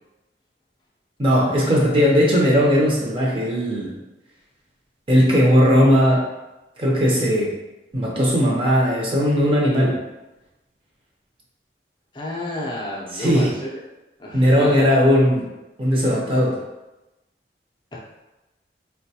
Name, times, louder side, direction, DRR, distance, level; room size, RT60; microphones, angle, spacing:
voice 1, 1.2-3.9 5.1-6.2 6.8-7.5 7.9-10.0 13.1-13.5 14.3-15.5 15.8-16.6, equal, 30° right, -3 dB, 0.6 m, -18 dB
voice 2, 12.1-13.8 14.2-14.9 17.9-18.0, left 1 dB, 25° left, -4 dB, 0.4 m, -31 dB
3.9 x 2.2 x 2.7 m, 1.0 s
head